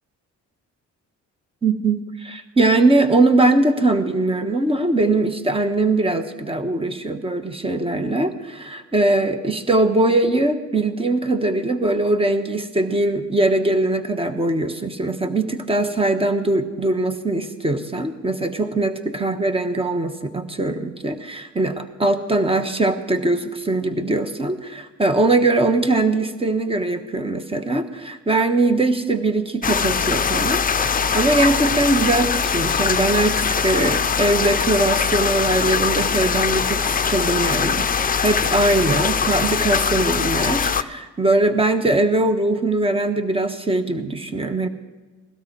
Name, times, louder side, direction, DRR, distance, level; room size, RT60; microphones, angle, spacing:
voice 1, 1.6-44.7, right 2 dB, 20° right, 8 dB, 1.3 m, -21 dB
sound 1, 29.6-40.8, left 6 dB, 30° left, 0.6 m, -21 dB
17.5 x 12.5 x 4.7 m, 1.3 s
cardioid pair, 90°, 30 cm